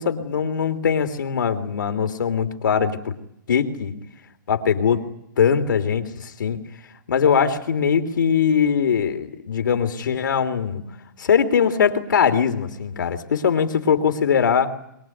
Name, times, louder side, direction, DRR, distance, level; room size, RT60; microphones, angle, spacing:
voice 1, 0.0-3.1 3.5-3.9 4.5-5.1 5.4-6.6 7.1-10.8 11.2-14.7, left 7 dB, 70° left, 7 dB, 3.1 m, -21 dB
23.0 x 23.0 x 9.3 m, 0.77 s
hypercardioid pair, 175°, 11 cm